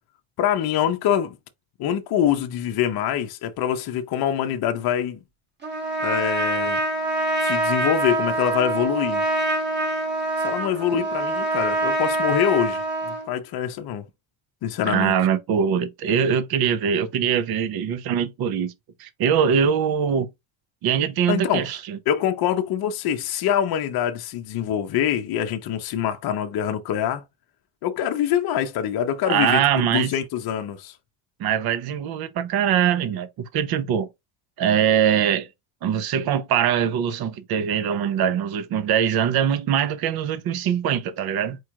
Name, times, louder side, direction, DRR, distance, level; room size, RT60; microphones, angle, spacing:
voice 1, 0.4-1.4 1.8-5.2 6.0-6.8 7.4-9.2 10.4-14.1 14.6-15.1 21.3-21.7 22.1-27.2 27.8-30.9, left 9 dB, 50° left, 0.7 m, -24 dB
Trumpet, 5.6-13.3, right 2 dB, 20° right, 1.0 m, -25 dB
voice 2, 14.8-18.7 19.0-20.3 20.8-22.0 29.3-30.1 31.4-34.1 34.6-35.5 35.8-41.6, right 8 dB, 50° right, 0.7 m, -22 dB
4.6 x 2.4 x 4.5 m
cardioid pair, 175°, 49 cm